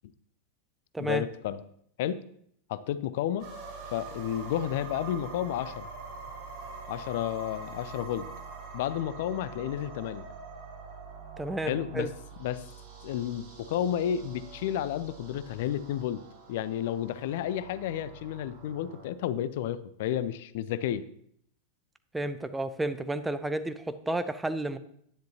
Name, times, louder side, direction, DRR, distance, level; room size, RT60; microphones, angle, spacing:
voice 1, 1.0-1.6 2.0-2.3 2.7-3.5 3.9-5.9 6.9-8.3 8.7-10.3 11.7-12.1 12.4-12.6 13.0-16.2 16.5-21.1, left 10 dB, 50° left, 16 dB, 0.4 m, -31 dB
sound 1, 3.4-19.1, right 4 dB, 45° right, 3.6 m, -45 dB
voice 2, 11.4-12.1 22.1-24.8, right 2 dB, 5° right, 11 dB, 0.6 m, -31 dB
10.5 x 10.0 x 2.9 m, 0.67 s
figure-of-eight pair, 90°, 0 cm